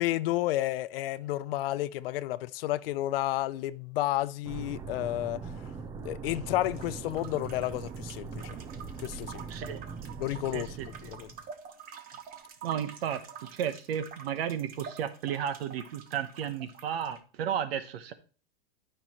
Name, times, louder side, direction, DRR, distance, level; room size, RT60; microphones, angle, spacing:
voice 1, 0.0-5.7 6.0-8.6 9.0-9.4 10.2-10.8 11.0-11.3, left 15 dB, 70° left, 0.6 m, -31 dB
sound 1, 4.4-11.5, right 5 dB, 15° right, 0.3 m, -41 dB
sound 2, 6.6-17.2, right 7 dB, 30° right, 1.1 m, -47 dB
voice 2, 9.5-9.8 10.5-10.9 12.6-13.2 13.5-18.1, right 9 dB, 75° right, 1.1 m, -33 dB
12.0 x 5.6 x 3.0 m
supercardioid pair, 145°, 30 cm